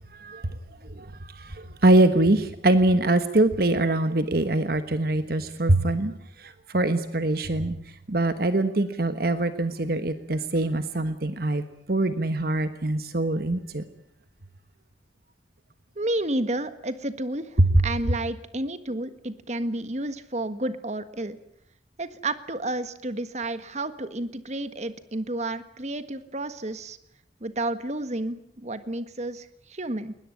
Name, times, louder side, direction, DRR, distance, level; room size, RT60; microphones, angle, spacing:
voice 1, 0.1-0.6 0.9-6.1 6.4-7.8 8.1-11.6 11.9-13.8 17.6-17.8, right 1 dB, 55° right, 11 dB, 1.3 m, -23 dB
voice 2, 15.9-21.4 22.0-27.0 27.4-30.2, right 1 dB, 40° right, 12 dB, 1.6 m, -31 dB
21.0 x 20.0 x 9.8 m, 0.72 s
head